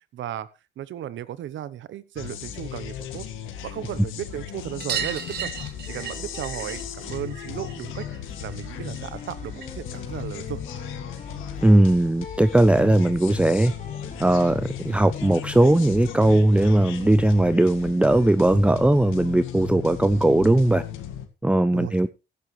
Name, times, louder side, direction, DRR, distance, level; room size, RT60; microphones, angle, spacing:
voice 1, 0.1-3.3 3.6-5.5 5.8-8.1 8.4-10.6 21.7-21.9, right 11 dB, 75° right, 17 dB, 1.0 m, -35 dB
sound 1, 2.2-21.3, left 10 dB, 90° left, 1.9 m, -36 dB
sound 2, 4.8-9.9 10.2-11.3 12.7-12.8 13.0-13.1 13.4-13.5 14.8-14.9 15.2-15.3 15.6-15.7 16.9-17.0 17.8-17.9, right 7 dB, 55° right, 2.4 m, -36 dB
sound 3, 5.9-17.2, left 4 dB, 35° left, 4.5 m, -42 dB
voice 2, 11.6-13.7 14.2-20.8 21.4-22.1, right 1 dB, 5° right, 13 dB, 0.6 m, -19 dB
15.0 x 11.5 x 3.2 m, 0.28 s
cardioid pair, 90°, 20 cm